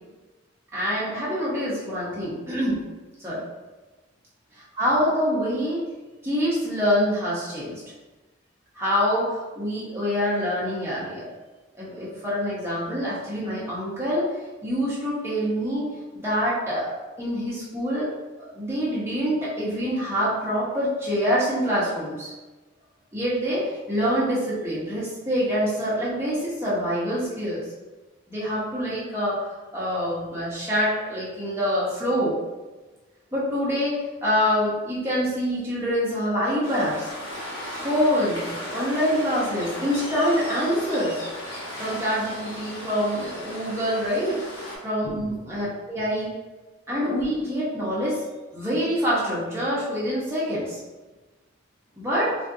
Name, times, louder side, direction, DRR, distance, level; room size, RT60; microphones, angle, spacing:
voice 1, 0.7-2.8 3.2-3.4 4.8-5.9 6.2-7.8 8.7-11.3 11.7-14.3 14.6-15.9 16.1-18.1 18.4-22.3 23.1-27.6 28.3-32.3 33.3-37.1 37.8-38.5 38.7-41.2 41.8-44.4 44.8-46.3 46.9-48.2 48.5-50.8 52.0-52.3, equal, 10° right, -8 dB, 0.9 m, -25 dB
Waves surf, 36.6-44.8, left 1 dB, 65° left, 1.2 m, -36 dB
3.3 x 2.5 x 2.6 m, 1.2 s
head